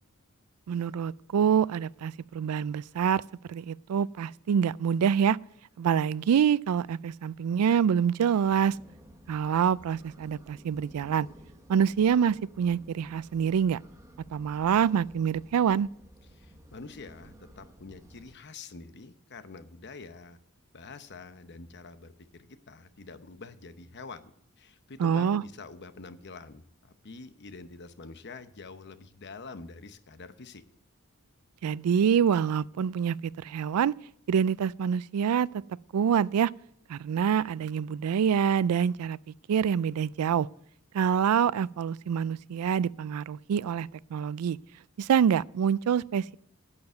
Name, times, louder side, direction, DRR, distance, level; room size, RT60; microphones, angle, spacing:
voice 1, 0.7-3.2 3.5-5.4 5.8-8.8 9.3-11.3 11.7-13.8 14.3-15.9 25.0-25.4 31.6-33.9 34.3-35.5 35.9-36.5 36.9-39.2 39.5-40.5 40.9-44.6 45.0-46.3, right 7 dB, 90° right, 0.3 m, -26 dB
sound 1, 8.4-18.3, equal, 15° right, 1.0 m, -54 dB
voice 2, 16.3-20.4 20.7-24.3 24.6-30.6, left 3 dB, 50° left, 0.9 m, -46 dB
10.5 x 6.9 x 7.9 m
head